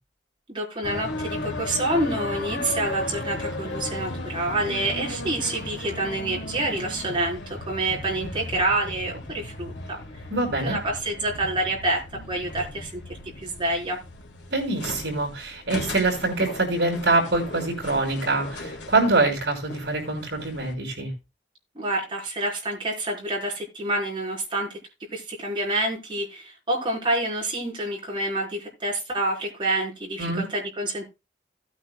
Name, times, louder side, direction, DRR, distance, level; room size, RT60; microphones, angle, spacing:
voice 1, 0.5-10.0 10.6-12.0 12.3-13.0 13.4-14.0 21.8-24.8 25.1-31.0, right 2 dB, 25° right, 4.0 m, -27 dB
sound 1, 0.8-20.7, left 1 dB, 75° left, 1.6 m, -36 dB
voice 2, 10.3-10.8 14.5-21.1 30.2-30.5, right 2 dB, 65° right, 5.2 m, -24 dB
17.0 x 9.3 x 2.2 m
head